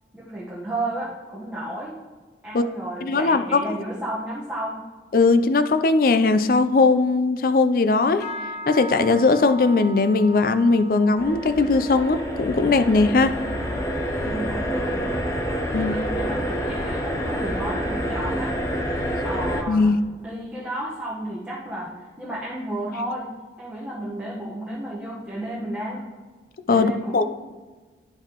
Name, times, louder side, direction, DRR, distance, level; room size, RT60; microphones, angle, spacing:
voice 1, 0.1-2.0 2.4-4.8 14.1-15.2 15.7-18.6 19.2-19.9 20.2-23.3 23.6-26.0 26.7-27.2, right 1 dB, 5° right, -7 dB, 1.0 m, -32 dB
voice 2, 3.0-3.8 5.1-8.2 8.7-13.4 15.7-16.0 19.7-20.0 26.7-27.2, left 3 dB, 50° left, 11 dB, 0.4 m, -19 dB
sound 1, 8.2-17.7 18.0-18.5 18.9-19.2 19.8-19.9, equal, 75° left, 2.1 m, -41 dB
sound 2, 11.2-19.6, equal, 15° left, 0.6 m, -27 dB
10.0 x 5.7 x 2.9 m, 1.4 s
head